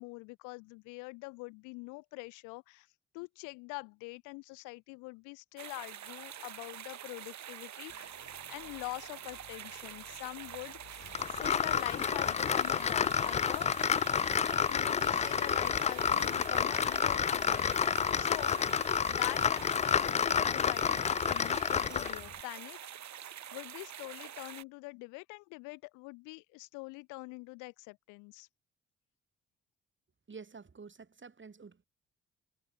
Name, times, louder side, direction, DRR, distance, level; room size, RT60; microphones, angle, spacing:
voice 1, 0.0-2.9 3.1-8.1 8.5-13.7 14.7-17.7 18.1-22.9 23.3-28.5, left 28 dB, 75° left, 1.3 m, -45 dB
sound 1, 5.6-24.6, right 10 dB, 60° right, 5.0 m, -46 dB
sound 2, 7.9-18.9, left 10 dB, 60° left, 7.3 m, -58 dB
sound 3, 11.1-22.3, left 7 dB, 25° left, 0.3 m, -30 dB
voice 2, 30.3-31.8, right 5 dB, 40° right, 7.6 m, -49 dB
hypercardioid pair, 40°, 31 cm